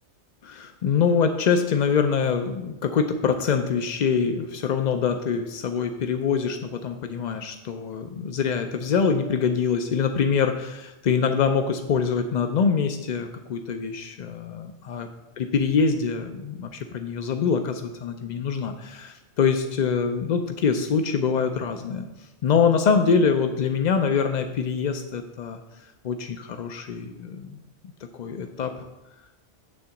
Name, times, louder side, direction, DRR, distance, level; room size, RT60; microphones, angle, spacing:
voice 1, 0.4-15.1 15.4-22.1 22.4-25.6 26.0-27.6 28.2-28.8, left 6 dB, 65° left, 6 dB, 0.4 m, -24 dB
8.6 x 3.8 x 7.0 m, 1.0 s
omnidirectional pair, 1.3 m